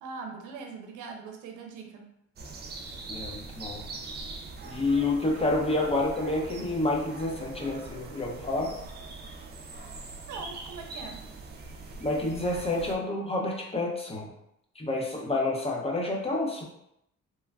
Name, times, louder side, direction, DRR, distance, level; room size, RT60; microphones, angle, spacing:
voice 1, 0.0-2.1 10.3-11.2, right 4 dB, 85° right, 2 dB, 0.6 m, -41 dB
sound 1, 2.4-13.0, right 3 dB, 35° right, 0.4 m, -42 dB
voice 2, 3.1-3.8 4.7-8.7 12.0-14.3 14.8-16.6, left 2 dB, 20° left, -1 dB, 0.6 m, -29 dB
3.2 x 2.2 x 2.2 m, 0.78 s
cardioid pair, 90°, 30 cm